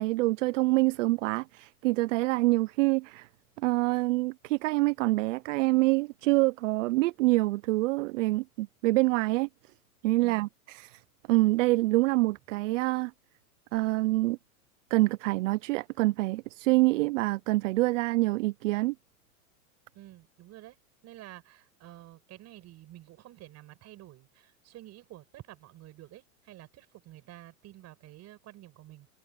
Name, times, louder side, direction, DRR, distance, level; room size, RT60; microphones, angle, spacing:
voice 1, 0.0-3.3 3.6-9.5 10.0-11.0 11.3-13.1 13.7-14.4 14.9-18.9, right 20 dB, 55° right, 0.6 m, -26 dB
voice 2, 19.9-20.8 21.0-29.1, right 15 dB, 35° right, 7.4 m, -50 dB
hypercardioid pair, 135°, 46 cm